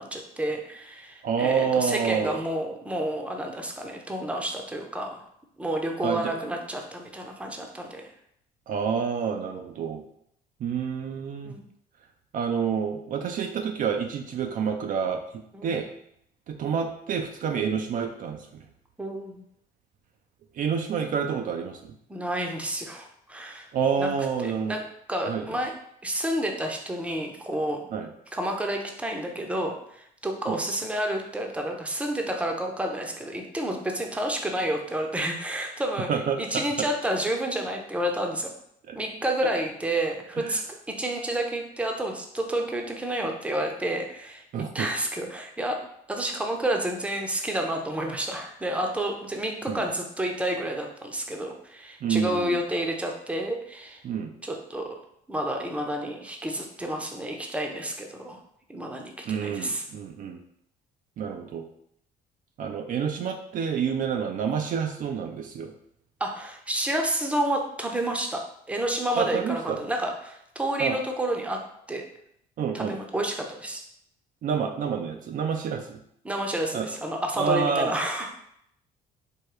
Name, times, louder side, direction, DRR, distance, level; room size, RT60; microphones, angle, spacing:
voice 1, 0.0-5.2 5.6-8.1 11.4-11.6 15.5-15.7 19.0-19.4 22.1-23.7 24.0-24.1 24.4-24.8 25.1-25.7 26.0-27.9 28.3-36.1 36.4-38.5 38.9-40.6 40.9-44.4 44.7-45.8 46.1-54.0 54.4-55.0 55.3-58.4 58.7-59.8 66.2-71.6 71.9-72.0 72.7-73.8 76.2-78.3, right 1 dB, 5° right, 2 dB, 0.7 m, -30 dB
voice 2, 1.2-2.4 6.0-6.3 8.7-10.0 10.6-11.6 12.3-15.9 16.5-18.6 20.5-21.9 23.7-24.7 25.3-25.6 27.9-28.1 30.5-30.6 36.1-36.6 38.9-39.0 40.4-40.6 44.5-44.9 49.7-49.8 52.0-52.6 54.0-54.4 59.3-60.4 61.2-61.7 62.6-65.7 69.2-69.8 70.8-71.0 72.6-73.0 74.4-76.0 76.7-76.9 77.4-77.9, right 6 dB, 50° right, 4 dB, 0.5 m, -28 dB
4.6 x 2.2 x 4.8 m, 0.72 s
cardioid pair, 110°, 17 cm